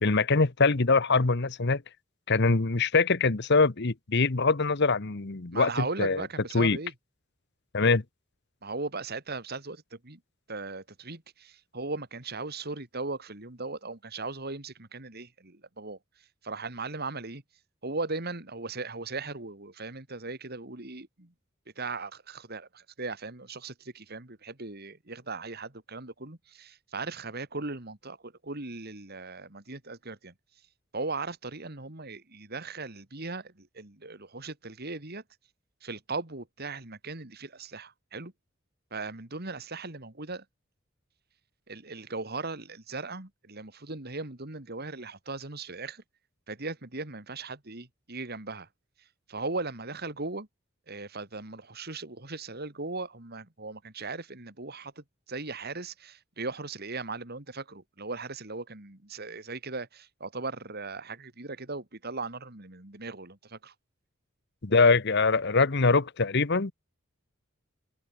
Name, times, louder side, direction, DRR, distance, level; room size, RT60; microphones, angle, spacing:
voice 1, 0.0-1.8 2.3-5.7 6.0-6.2 6.5-6.8 7.7-8.0 64.6-66.7, left 4 dB, 55° left, 1.1 m, -23 dB
voice 2, 5.5-6.9 8.6-10.2 10.5-17.4 17.8-21.3 21.8-30.3 30.9-35.2 35.8-38.3 38.9-40.4 41.7-46.0 46.5-48.7 49.3-50.5 50.9-63.7, right 3 dB, 50° right, 2.8 m, -38 dB
head